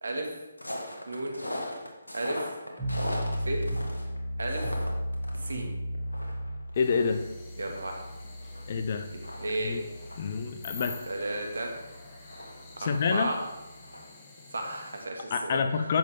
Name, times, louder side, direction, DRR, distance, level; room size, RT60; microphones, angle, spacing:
voice 1, 0.0-0.4 1.1-1.4 2.1-2.5 3.4-3.6 4.4-4.8 5.4-5.7 7.6-8.0 9.4-9.8 11.0-11.7 12.8-13.4 14.5-15.9, right 2 dB, 70° right, 2 dB, 2.0 m, -33 dB
sound 1, 0.6-5.6 5.9-8.7 9.0-9.1 9.2-13.3 13.7-15.0 15.3-15.5, left 1 dB, 85° left, 1.9 m, -40 dB
sound 2, 2.8-13.9, equal, 5° right, 3.1 m, -36 dB
sound 3, 6.7-15.1, left 4 dB, 20° left, 1.6 m, -49 dB
voice 2, 6.8-7.2 8.7-9.1 9.6-9.8 10.2-11.0 12.8-13.3 15.3-16.0, left 5 dB, 40° left, 7 dB, 0.7 m, -27 dB
10.5 x 7.4 x 3.7 m, 1.1 s
figure-of-eight pair, 145°, 0 cm